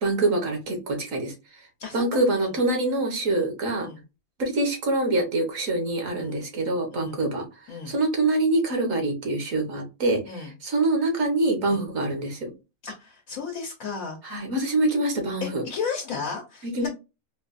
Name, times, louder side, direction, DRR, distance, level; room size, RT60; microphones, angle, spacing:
voice 1, 0.0-1.3 1.9-3.9 4.4-12.5 14.2-15.6 16.6-16.9, right 2 dB, 65° right, 2 dB, 1.4 m, -25 dB
voice 2, 12.8-14.4 15.4-16.9, left 5 dB, 70° left, 0 dB, 1.1 m, -34 dB
4.4 x 2.3 x 2.5 m, 0.28 s
omnidirectional pair, 1.5 m